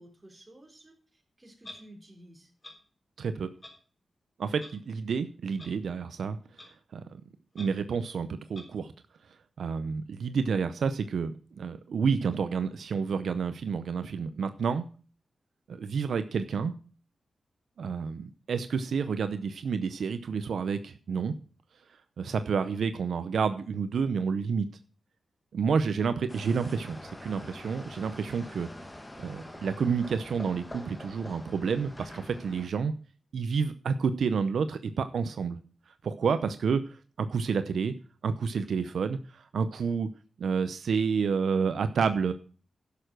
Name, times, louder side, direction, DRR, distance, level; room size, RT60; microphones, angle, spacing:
voice 1, 0.0-2.5 36.2-36.4, right 1 dB, 20° right, 1 dB, 3.8 m, -53 dB
Clock, 1.6-1.8 2.6-2.7 3.6-3.7 4.6-4.7 5.6-5.7 6.6-6.7 7.6-7.7 8.5-8.7, left 2 dB, 35° left, 3.5 m, -45 dB
voice 2, 3.2-3.5 4.4-6.4 6.9-7.0 7.5-8.9 9.6-14.8 15.7-16.7 17.8-21.3 22.2-24.7 25.5-28.7 29.2-32.9 33.3-35.6 36.0-36.8 37.2-37.9 38.2-40.1 40.4-42.3, right 5 dB, 85° right, 11 dB, 0.7 m, -29 dB
sound 1, 26.3-32.7, left 1 dB, 20° left, 1.4 m, -45 dB
11.0 x 6.8 x 6.2 m, 0.39 s
cardioid pair, 85°, 0 cm